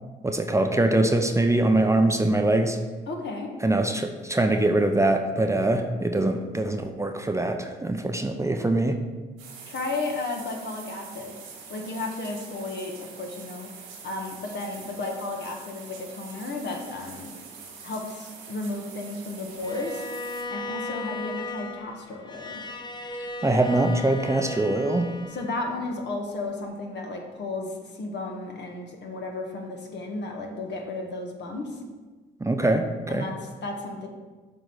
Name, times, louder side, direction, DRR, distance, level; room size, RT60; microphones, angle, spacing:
voice 1, 0.2-2.8 3.6-9.0 23.2-25.1 32.4-33.3, right 2 dB, 15° right, 5 dB, 0.7 m, -23 dB
voice 2, 3.1-3.5 9.7-11.4 11.7-13.7 14.0-17.3 17.8-20.0 20.5-22.6 25.3-31.8 33.1-34.1, left 2 dB, 55° left, 2 dB, 1.5 m, -33 dB
sound 1, 9.4-20.4, right 5 dB, 90° right, 1.6 m, -44 dB
Bowed string instrument, 19.6-25.9, left 2 dB, 20° left, 0.7 m, -36 dB
7.3 x 3.9 x 6.4 m, 1.3 s
hypercardioid pair, 55°, 21 cm